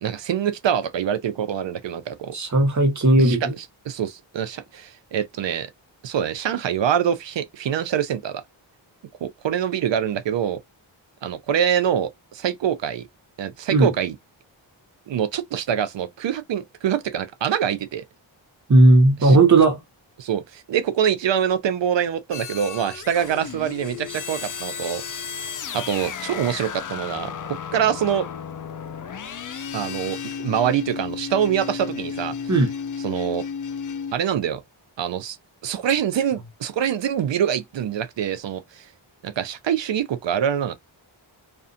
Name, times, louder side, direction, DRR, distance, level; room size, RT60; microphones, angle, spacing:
voice 1, 0.0-2.3 3.2-5.7 6.0-8.4 9.2-10.6 11.2-13.1 13.4-14.2 15.1-18.0 19.2-19.4 20.2-25.0 25.7-28.3 29.7-32.3 33.0-33.4 34.1-34.6 35.0-35.4 35.6-38.9 39.2-40.8, right 9 dB, 65° right, 0.6 m, -25 dB
voice 2, 2.3-3.5 13.7-13.9 18.7-19.8 32.5-32.7, right 2 dB, 35° right, 0.9 m, -15 dB
sound 1, 22.3-34.1, left 7 dB, 40° left, 0.5 m, -33 dB
2.4 x 2.4 x 2.6 m
cardioid pair, 60°, 48 cm